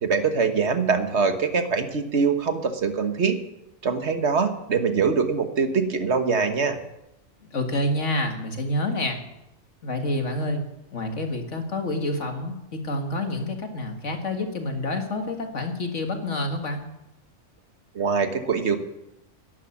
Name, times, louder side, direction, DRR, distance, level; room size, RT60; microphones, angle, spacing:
voice 1, 0.0-3.4 3.8-6.8 17.9-18.8, right 5 dB, 65° right, 7 dB, 1.6 m, -23 dB
voice 2, 7.5-9.2 9.8-10.6 10.9-16.8, left 1 dB, 85° left, 4 dB, 2.2 m, -28 dB
11.5 x 11.0 x 7.2 m, 0.89 s
omnidirectional pair, 1.2 m